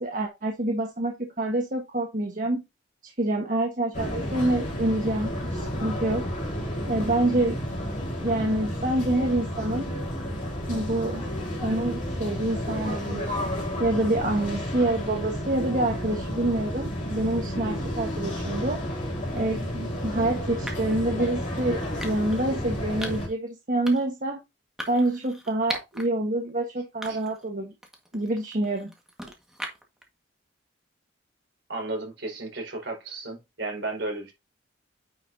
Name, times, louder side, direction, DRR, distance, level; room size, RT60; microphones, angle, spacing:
voice 1, 0.0-2.6 3.0-6.2 6.9-7.6 8.2-9.9 10.7-11.3 11.6-13.4 13.8-18.8 19.3-24.4 24.9-27.7 28.1-28.9, right 1 dB, 45° right, 1.4 m, -27 dB
sound 1, 3.9-23.3, equal, 40° left, 3.0 m, -31 dB
sound 2, 19.4-19.6 20.7-21.0 22.0-22.4 23.0-23.3 23.8-24.2 24.8-26.1 26.5-26.6 27.0-27.5 27.8-30.0, equal, ahead, 1.6 m, -39 dB
voice 2, 31.7-34.3, right 2 dB, 65° right, 4.6 m, -33 dB
9.3 x 5.8 x 2.7 m
head